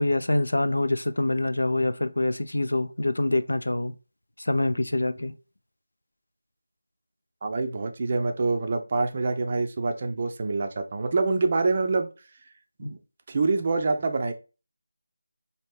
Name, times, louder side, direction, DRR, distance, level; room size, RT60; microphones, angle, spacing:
voice 1, 0.0-3.9 4.4-5.3 12.8-12.9, left 2 dB, 75° left, 0.5 m, -25 dB
voice 2, 7.4-12.1 12.8-13.0 13.3-14.3, right 3 dB, 35° right, 0.5 m, -26 dB
4.2 x 2.8 x 3.3 m
figure-of-eight pair, 165°, 0 cm